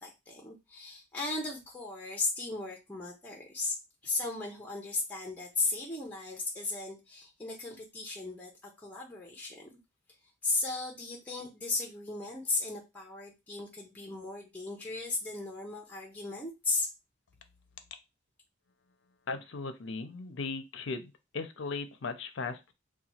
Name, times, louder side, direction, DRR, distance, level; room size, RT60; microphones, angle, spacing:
voice 1, 0.0-3.7 4.0-8.5 8.8-9.7 10.4-16.9, left 3 dB, 10° left, 0 dB, 0.6 m, -36 dB
voice 2, 19.3-22.7, left 4 dB, 65° left, 8 dB, 0.5 m, -37 dB
2.9 x 2.2 x 4.2 m, 0.24 s
head